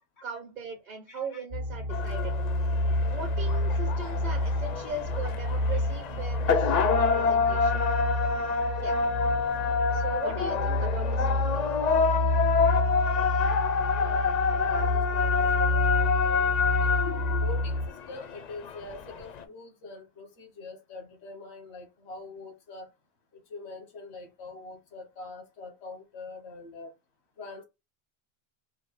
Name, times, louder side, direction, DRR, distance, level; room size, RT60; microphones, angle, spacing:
voice 1, 0.2-2.4 3.1-7.8 8.8-9.0 9.9-11.8, right 3 dB, 45° right, 0.8 m, -39 dB
voice 2, 1.1-1.4 3.1-3.2 12.6-12.7 13.9-16.5 17.4-22.9 23.5-26.9 27.4-27.6, left 3 dB, 90° left, 1.3 m, -44 dB
sound 1, 1.5-17.9, left 1 dB, 70° right, 1.2 m, -29 dB
sound 2, 1.9-19.4, left 5 dB, 55° left, 0.5 m, -27 dB
4.4 x 2.6 x 3.1 m
omnidirectional pair, 1.1 m